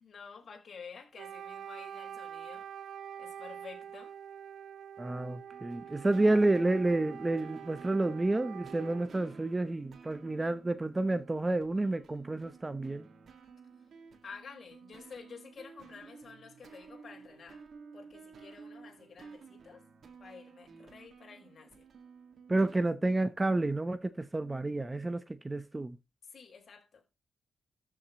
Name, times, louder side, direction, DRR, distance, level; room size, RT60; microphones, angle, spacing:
voice 1, 0.0-2.7 3.2-4.2 5.9-6.1 14.2-17.7 17.9-19.9 20.2-21.9 26.2-27.0, left 5 dB, 45° left, 4.5 m, -50 dB
Wind instrument woodwind instrument, 1.1-9.2, right 9 dB, 75° right, 0.6 m, -46 dB
voice 2, 5.0-13.1 22.5-26.0, right 2 dB, 15° right, 0.8 m, -30 dB
sound 1, 5.1-22.9, right 5 dB, 60° right, 1.9 m, -53 dB
13.5 x 7.5 x 3.0 m
cardioid pair, 125°, 0 cm